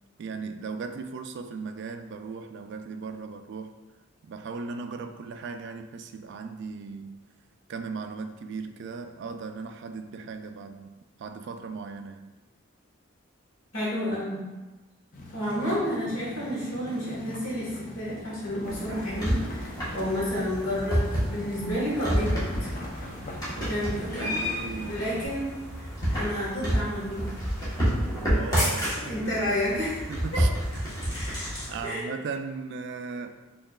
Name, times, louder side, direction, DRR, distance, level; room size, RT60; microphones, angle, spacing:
voice 1, 0.2-3.7 4.2-7.2 7.7-12.3 15.4-15.5 23.6-23.8 24.2-25.1 28.1-30.5 31.1-31.2 31.7-33.3, right 4 dB, 60° right, 8 dB, 0.3 m, -37 dB
voice 2, 13.7-14.4 15.3-22.7 23.7-24.3 24.9-25.5 25.8-27.3 28.9-30.4 31.1-31.5 31.8-32.0, equal, 85° left, -6 dB, 1.4 m, -30 dB
sound 1, 15.1-25.3, left 1 dB, 40° left, 0.5 m, -42 dB
sound 2, 18.6-31.8, equal, 20° left, 1.2 m, -30 dB
4.6 x 2.9 x 2.3 m, 1.2 s
head